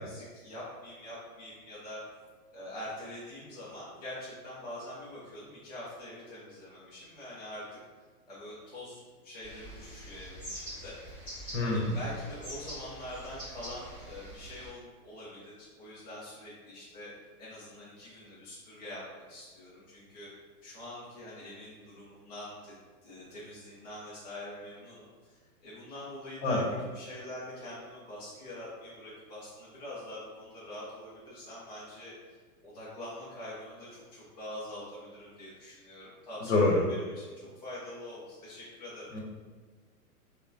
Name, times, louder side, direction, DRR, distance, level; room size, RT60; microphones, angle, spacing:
voice 1, 0.0-2.0 2.5-7.8 8.3-11.0 11.6-17.1 17.4-20.3 20.6-22.7 23.0-39.1, left 1 dB, 30° left, -9 dB, 0.5 m, -44 dB
sound 1, 9.4-14.7, equal, 10° left, 1.2 m, -45 dB
voice 2, 11.5-11.9 26.4-26.6 36.5-36.8 39.1-39.2, left 2 dB, 50° left, -2 dB, 1.0 m, -26 dB
5.4 x 2.2 x 2.6 m, 1.4 s
hypercardioid pair, 170°, 46 cm